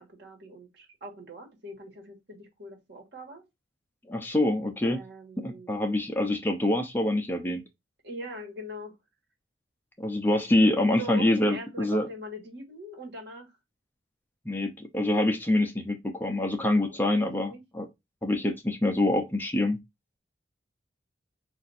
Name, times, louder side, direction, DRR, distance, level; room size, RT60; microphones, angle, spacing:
voice 1, 0.0-3.4 4.8-5.7 8.0-8.9 10.9-13.6 16.7-17.6, equal, 60° right, 1.6 m, -42 dB
voice 2, 4.1-5.0 5.4-7.6 10.0-12.1 14.5-17.9 18.2-19.8, left 1 dB, 10° left, 0.6 m, -25 dB
5.0 x 2.6 x 4.1 m
head